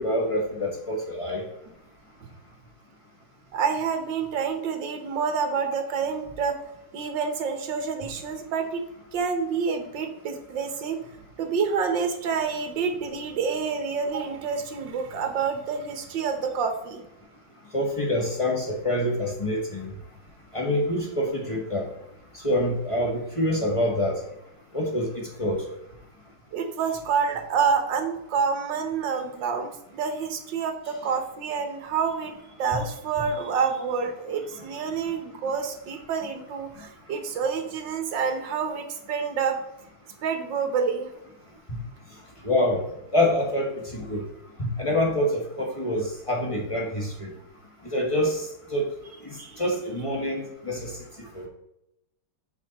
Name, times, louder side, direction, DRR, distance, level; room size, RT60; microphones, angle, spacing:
voice 1, 0.0-1.4 17.7-19.9 20.5-21.9 22.4-24.2 24.7-25.1 25.4-25.6 42.4-42.8 43.1-44.2 44.8-47.3 47.9-48.4 48.7-48.8 49.6-50.9 51.3-51.5, left 1 dB, 20° left, -1 dB, 1.1 m, -26 dB
voice 2, 3.5-6.5 6.9-8.8 9.1-11.1 11.4-17.0 26.5-32.3 32.6-39.6 40.2-41.1 49.4-49.6, right 6 dB, 60° right, 6 dB, 1.5 m, -28 dB
7.8 x 5.0 x 4.1 m, 0.83 s
omnidirectional pair, 2.4 m